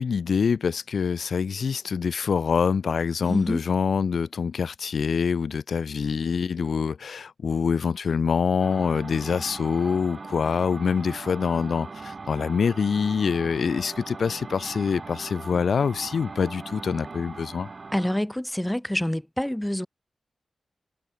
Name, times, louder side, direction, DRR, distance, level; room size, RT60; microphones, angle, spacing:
voice 1, 0.0-17.7, left 6 dB, 75° left, 0.5 m, -25 dB
voice 2, 3.2-3.6 17.9-19.9, left 1 dB, 5° left, 1.0 m, -27 dB
sound 1, 8.6-18.2, right 4 dB, 40° right, 3.7 m, -40 dB
wide cardioid pair, 125°, 0 cm